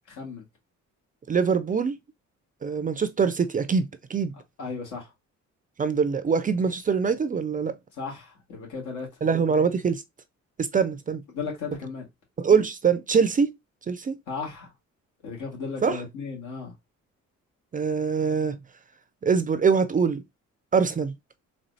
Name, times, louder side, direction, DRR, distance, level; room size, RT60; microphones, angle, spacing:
voice 1, 1.3-2.0 2.6-4.4 5.8-7.8 9.2-10.0 10.6-11.2 12.4-13.5 13.9-14.2 15.8-16.0 17.7-18.6 19.2-20.2 20.7-21.1, right 5 dB, 30° right, 0.4 m, -23 dB
voice 2, 4.6-5.1 8.0-9.1 11.3-12.0 14.3-14.7 15.2-16.7, left 5 dB, 80° left, 2.2 m, -35 dB
4.2 x 3.1 x 2.7 m
cardioid pair, 90°, 30 cm